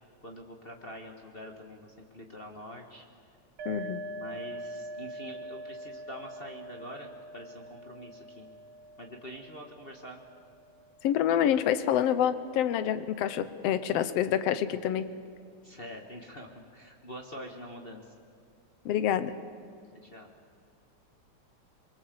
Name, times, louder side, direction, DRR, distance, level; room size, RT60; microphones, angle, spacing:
voice 1, 0.2-3.0 4.1-8.5 9.0-10.2 15.6-18.0 20.0-20.3, equal, 30° left, 2 dB, 1.1 m, -45 dB
voice 2, 3.6-4.0 11.0-15.1 18.8-19.3, left 10 dB, 65° left, 13 dB, 1.7 m, -27 dB
sound 1, 3.6-11.1, right 2 dB, 60° right, 2.2 m, -43 dB
24.0 x 23.5 x 7.8 m, 2.3 s
omnidirectional pair, 3.5 m